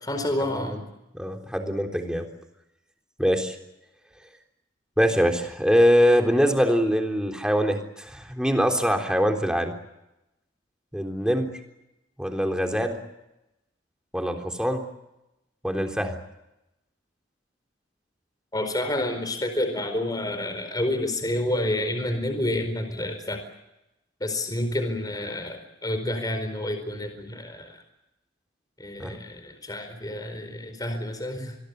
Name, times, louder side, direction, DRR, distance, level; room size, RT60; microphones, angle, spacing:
voice 1, 0.0-0.9 18.5-23.4 24.2-27.8 28.8-31.6, left 1 dB, 20° left, 8 dB, 4.5 m, -29 dB
voice 2, 1.1-2.3 3.2-3.6 5.0-9.7 10.9-11.5 12.2-13.0 14.1-14.8 15.6-16.2 29.0-29.1, equal, 5° right, 4 dB, 3.6 m, -23 dB
27.5 x 22.0 x 8.2 m, 0.92 s
head